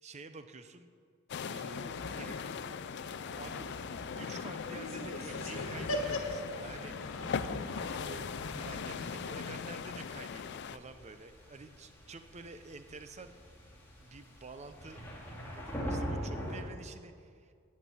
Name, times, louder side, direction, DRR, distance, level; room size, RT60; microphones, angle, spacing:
voice 1, 0.0-0.9 1.4-2.5 3.4-3.7 4.1-7.4 7.9-13.3 14.0-15.0 15.5-17.5, right 3 dB, 35° right, 9 dB, 0.6 m, -49 dB
sound 1, 1.3-10.8, left 6 dB, 55° left, 0.4 m, -40 dB
sound 2, 1.7-9.9, left 1 dB, 85° left, 1.4 m, -41 dB
sound 3, 8.5-16.6, equal, 10° left, 2.3 m, -43 dB
10.0 x 7.5 x 8.7 m, 2.1 s
head